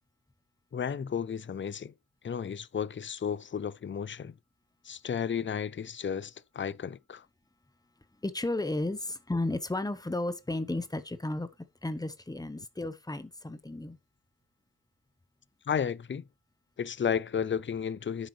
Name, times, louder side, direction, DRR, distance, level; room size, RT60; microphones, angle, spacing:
voice 1, 0.7-1.9 2.2-4.3 4.8-7.3 15.7-16.2 16.8-18.3, left 7 dB, 35° left, 0.5 m, -33 dB
voice 2, 8.2-11.5 11.8-14.0, left 2 dB, 10° left, 0.9 m, -33 dB
10.0 x 8.2 x 3.2 m
wide cardioid pair, 175°, 36 cm